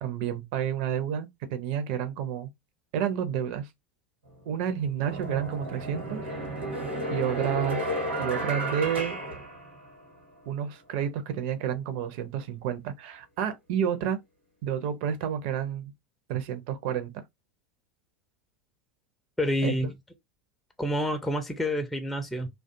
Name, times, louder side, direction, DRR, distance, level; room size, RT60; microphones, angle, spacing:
voice 1, 0.0-2.5 2.9-3.7 4.5-6.3 7.1-7.9 8.2-9.2 10.5-14.2 14.6-15.9 16.3-17.2 19.6-19.9, right 9 dB, 50° right, 0.5 m, -30 dB
sound 1, 4.3-4.4 5.0-10.2, right 1 dB, 85° right, 1.1 m, -33 dB
voice 2, 19.4-19.9 20.8-22.5, equal, 5° left, 0.4 m, -28 dB
2.4 x 2.3 x 2.5 m
figure-of-eight pair, 80°, 6 cm